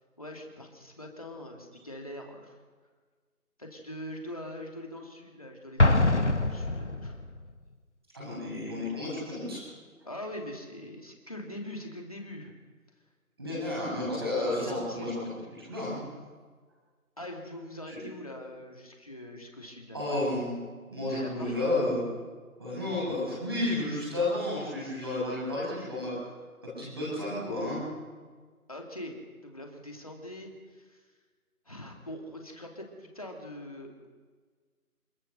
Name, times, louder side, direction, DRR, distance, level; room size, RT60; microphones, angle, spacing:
voice 1, 0.2-2.6 3.6-7.2 10.0-12.5 13.5-13.8 14.3-15.1 17.2-20.3 21.1-21.6 28.7-29.1 29.4-31.0 31.7-34.1, left 1 dB, 25° left, 1 dB, 2.7 m, -42 dB
Explosion, 5.8-7.4, left 2 dB, 50° left, 1.7 m, -24 dB
voice 2, 8.1-9.6 13.4-15.2 15.6-16.0 17.9-18.0 19.9-20.5 20.9-22.0 22.6-26.2 26.6-27.8, left 2 dB, 15° right, -6 dB, 7.6 m, -31 dB
27.0 x 21.0 x 6.8 m, 1.5 s
figure-of-eight pair, 180°, 45 cm